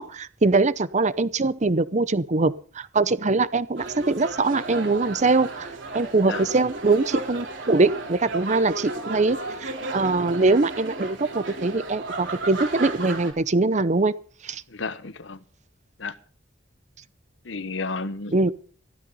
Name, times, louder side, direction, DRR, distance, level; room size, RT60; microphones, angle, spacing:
voice 1, 0.0-5.7 5.9-14.1 14.4-14.6 18.3-18.5, right 3 dB, 40° right, 0.8 m, -22 dB
sound 1, 3.8-13.3, right 3 dB, 75° right, 4.0 m, -34 dB
voice 2, 14.7-15.4 16.0-16.1 17.4-18.5, left 3 dB, 75° left, 1.1 m, -32 dB
14.5 x 13.0 x 5.5 m
head